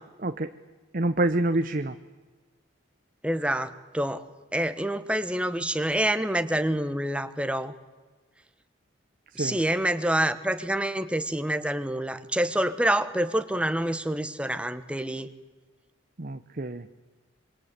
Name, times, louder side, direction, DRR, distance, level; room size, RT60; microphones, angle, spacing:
voice 1, 0.9-2.0 9.3-9.6 16.2-16.9, right 2 dB, 45° right, 9 dB, 0.8 m, -27 dB
voice 2, 3.2-4.2 4.5-7.7 9.4-15.3, right 1 dB, 5° right, 10 dB, 1.2 m, -27 dB
26.5 x 23.5 x 8.2 m, 1.3 s
head